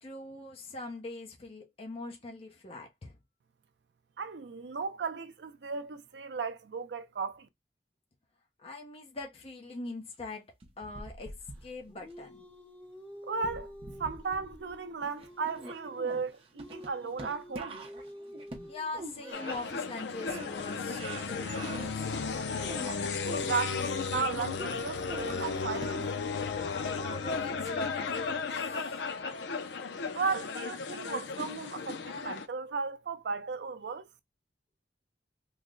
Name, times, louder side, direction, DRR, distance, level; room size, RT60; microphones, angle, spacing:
voice 1, 0.0-3.2 8.6-10.4 10.8-11.4 11.6-12.4 18.7-22.1 27.0-29.0, left 2 dB, 35° left, 0.7 m, -42 dB
voice 2, 4.2-7.5 13.2-13.7 14.0-17.8 23.4-26.0 30.1-34.1, right 5 dB, 75° right, 0.5 m, -35 dB
sound 1, 10.6-12.1 13.3-14.8 15.0-20.0 20.3-21.9 22.3-23.5 24.6-26.3 26.8-26.9, right 2 dB, 35° right, 0.7 m, -44 dB
sound 2, 11.6-23.0, left 1 dB, 10° left, 0.9 m, -50 dB
sound 3, 19.3-32.5, left 5 dB, 75° left, 0.5 m, -34 dB
3.2 x 2.1 x 3.7 m
head